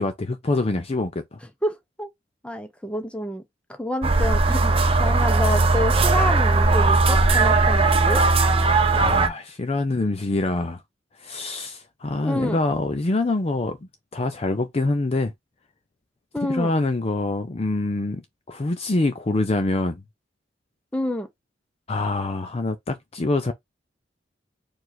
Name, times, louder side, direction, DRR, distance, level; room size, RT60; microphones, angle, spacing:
voice 1, 0.0-1.4 8.9-10.8 11.2-13.8 14.1-15.3 16.5-20.0 21.9-23.5, left 2 dB, 35° left, 0.5 m, -25 dB
voice 2, 1.6-2.1 2.4-3.4 3.8-8.2 12.2-12.6 16.3-16.7 20.9-21.3, left 1 dB, 5° left, 0.8 m, -28 dB
sound 1, 4.0-9.3, right 3 dB, 30° right, 0.7 m, -18 dB
4.7 x 2.5 x 3.9 m
head